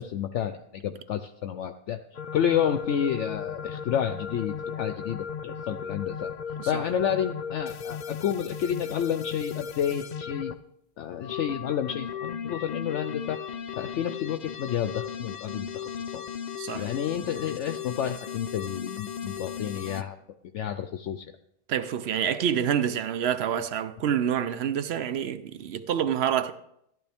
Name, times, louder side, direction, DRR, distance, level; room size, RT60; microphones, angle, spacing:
voice 1, 0.0-2.0 2.3-6.3 6.7-10.5 11.0-13.4 13.8-16.2 16.7-20.2 20.5-21.3, left 9 dB, 65° left, 0.8 m, -30 dB
sound 1, 2.1-10.5 11.1-20.0, left 7 dB, 85° left, 0.3 m, -36 dB
voice 2, 16.6-16.9 21.7-26.5, right 9 dB, 60° right, 0.8 m, -27 dB
14.0 x 11.0 x 3.5 m
omnidirectional pair, 1.4 m